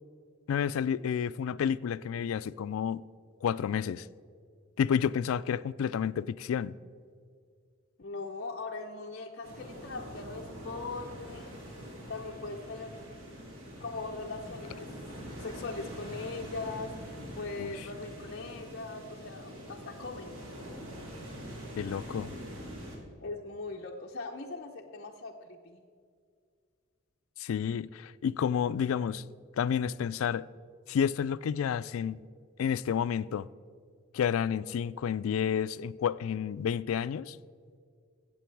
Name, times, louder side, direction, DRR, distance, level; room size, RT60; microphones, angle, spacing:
voice 1, 0.5-3.0 3.4-4.1 4.8-6.7 17.6-17.7 21.8-22.3 27.4-29.2 29.6-30.5 30.9-32.2 32.6-33.5 34.1-37.4, left 8 dB, 85° left, 0.3 m, -30 dB
voice 2, 8.0-11.6 12.1-12.9 13.8-14.9 15.4-20.3 23.2-25.8, left 3 dB, 50° left, 0.6 m, -40 dB
sound 1, 9.4-23.0, equal, 90° right, 2.5 m, -44 dB
15.5 x 7.6 x 4.6 m
head